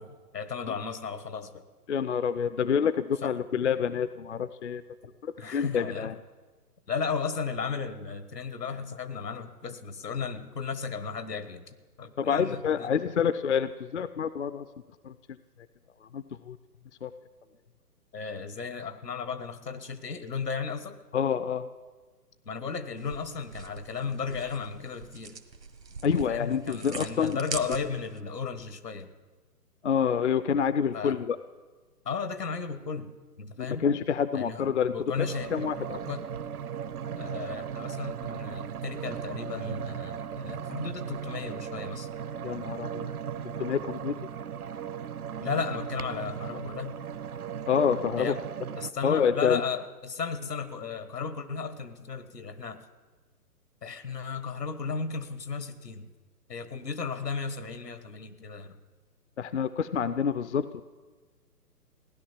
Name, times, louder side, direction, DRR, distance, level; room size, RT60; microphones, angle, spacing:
voice 1, 0.0-1.6 3.2-3.3 5.4-6.1 6.9-12.9 18.1-21.0 22.4-25.4 26.3-29.1 30.9-31.2 32.0-33.1 33.4-33.8 34.3-34.7 34.9-36.2 37.2-42.1 45.4-47.0 48.2-48.4 48.8-52.8 53.8-56.1 56.5-58.8, left 5 dB, 80° left, 11 dB, 1.5 m, -35 dB
voice 2, 1.9-4.8 5.2-6.1 12.2-14.7 15.0-15.1 16.1-16.6 17.0-17.1 21.1-21.7 26.0-27.4 29.8-31.4 33.6-35.3 35.5-36.0 42.4-43.1 43.4-44.1 47.7-48.3 49.0-49.6 59.4-60.8, left 7 dB, 50° left, 13 dB, 0.5 m, -27 dB
sound 1, 23.0-28.2, right 4 dB, 90° right, 1.5 m, -42 dB
sound 2, 35.2-48.9, right 8 dB, 65° right, 0.7 m, -37 dB
16.0 x 11.0 x 7.4 m, 1.3 s
figure-of-eight pair, 135°, 48 cm